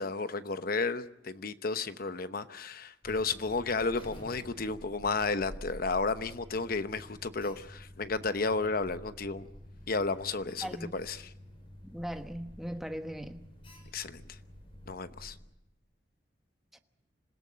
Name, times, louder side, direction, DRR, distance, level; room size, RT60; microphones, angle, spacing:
voice 1, 0.0-9.5 9.9-10.7 10.9-11.3 13.9-14.4 14.9-15.4, left 3 dB, 55° left, 1.0 m, -32 dB
Alarm, 3.0-15.4, equal, 30° left, 6.9 m, -49 dB
voice 2, 10.6-10.9 11.8-13.4 16.7-16.8, equal, ahead, 1.1 m, -39 dB
26.5 x 17.0 x 7.5 m
head